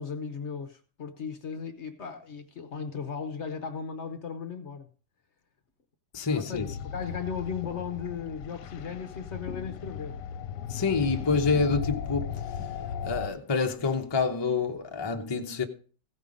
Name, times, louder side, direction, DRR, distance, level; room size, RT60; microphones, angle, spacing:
voice 1, 0.0-4.9 6.3-10.1, left 6 dB, 50° left, 0.9 m, -36 dB
voice 2, 6.1-6.7 10.7-12.4 13.0-15.6, left 4 dB, 25° left, 0.5 m, -27 dB
sound 1, 6.5-13.3, left 8 dB, 75° left, 1.2 m, -36 dB
15.5 x 5.5 x 5.0 m
omnidirectional pair, 1.9 m